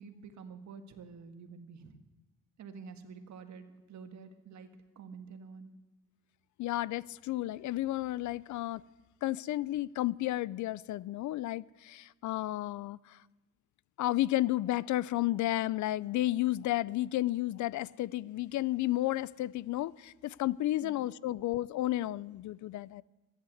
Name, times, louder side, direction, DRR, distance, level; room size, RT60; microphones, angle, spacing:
voice 1, 0.0-2.0 2.6-5.7 20.8-21.0 21.3-21.4, right 5 dB, 65° right, 8 dB, 1.8 m, -49 dB
voice 2, 6.6-8.8 9.2-13.2 14.0-23.0, left 15 dB, 75° left, 22 dB, 0.5 m, -32 dB
14.0 x 11.5 x 7.9 m, 1.1 s
cardioid pair, 90°, 30 cm